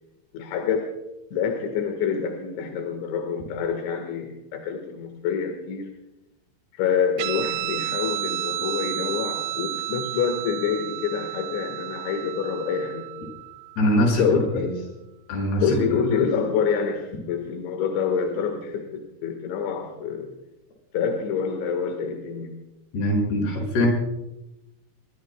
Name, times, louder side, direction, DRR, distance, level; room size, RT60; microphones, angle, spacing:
voice 1, 0.3-0.9 1.3-5.9 6.8-13.3 14.0-14.9 15.6-20.4 20.9-22.6, left 6 dB, 70° left, 5 dB, 3.8 m, -27 dB
Guitar, 7.2-14.1, right 15 dB, 75° right, 2.5 m, -32 dB
voice 2, 13.8-14.2 14.5-14.7 15.3-15.8 22.9-23.9, left 1 dB, 55° left, 1 dB, 8.0 m, -22 dB
25.5 x 22.5 x 2.3 m, 0.93 s
omnidirectional pair, 5.8 m